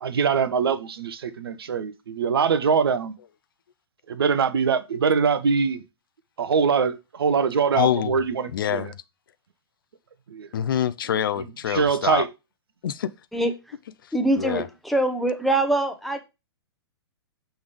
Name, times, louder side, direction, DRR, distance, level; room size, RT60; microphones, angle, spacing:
voice 1, 0.0-3.1 4.1-5.8 6.4-8.9 10.3-10.5 11.4-12.3, right 6 dB, 60° right, 0.8 m, -23 dB
voice 2, 7.7-8.2 8.5-8.9 10.5-12.3 12.8-13.1 14.4-14.7, left 10 dB, 55° left, 0.5 m, -25 dB
voice 3, 14.1-16.2, right 1 dB, ahead, 0.8 m, -23 dB
6.3 x 3.4 x 5.0 m
figure-of-eight pair, 110°, 14 cm